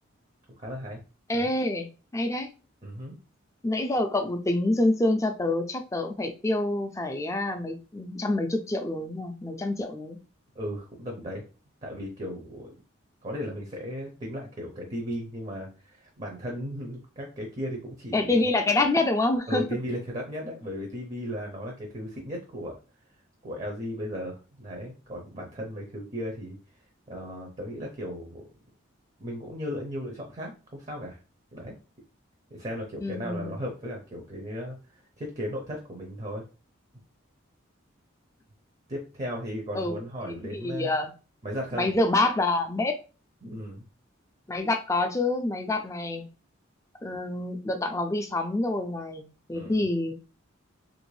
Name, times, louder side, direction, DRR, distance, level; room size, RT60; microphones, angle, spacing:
voice 1, 0.6-1.0 1.3-1.5 2.8-3.2 10.6-11.4 11.8-12.7 13.2-18.5 19.5-22.8 23.4-26.6 27.1-28.4 29.2-31.2 31.5-31.8 32.5-36.4 38.9-40.9 41.4-41.9 43.4-43.8 49.5-49.8, equal, 30° right, 1 dB, 0.6 m, -36 dB
voice 2, 1.3-1.9 2.1-2.5 3.6-10.2 18.1-19.6 33.0-33.5 39.7-40.0 40.3-41.1 41.8-43.0 44.5-46.3 47.0-49.2 49.5-50.1, left 2 dB, 15° left, 5 dB, 0.3 m, -27 dB
2.9 x 2.5 x 3.2 m, 0.34 s
head